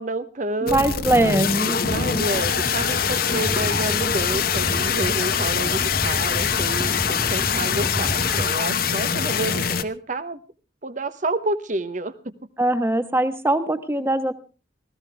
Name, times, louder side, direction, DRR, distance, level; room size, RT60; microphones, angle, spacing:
voice 1, 0.0-1.0 1.8-10.4 10.8-12.3, right 2 dB, 45° right, 13 dB, 1.0 m, -29 dB
voice 2, 0.6-1.8 12.6-14.3, right 1 dB, 15° right, 10 dB, 1.2 m, -21 dB
sound 1, 0.7-9.8, left 7 dB, 50° left, 1.0 m, -24 dB
sound 2, 1.8-8.5, equal, 5° left, 0.7 m, -31 dB
19.0 x 15.5 x 3.5 m, 0.35 s
head